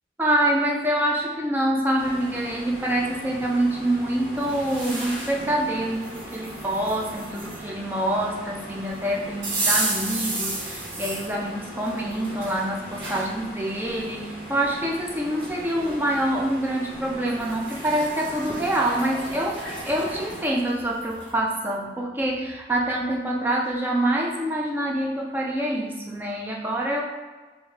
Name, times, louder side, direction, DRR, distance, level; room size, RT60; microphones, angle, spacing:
voice 1, 0.2-27.0, right 1 dB, 10° right, -2 dB, 0.4 m, -26 dB
sound 1, 2.0-20.4, equal, 50° right, 1.5 m, -40 dB
sound 2, 4.4-5.5 6.0-7.6 9.4-11.3 11.8-13.3 13.9-14.0 15.0-15.1 15.4-16.0 17.3-21.3, right 2 dB, 85° right, 1.4 m, -32 dB
3.4 x 3.0 x 3.6 m, 1.3 s
head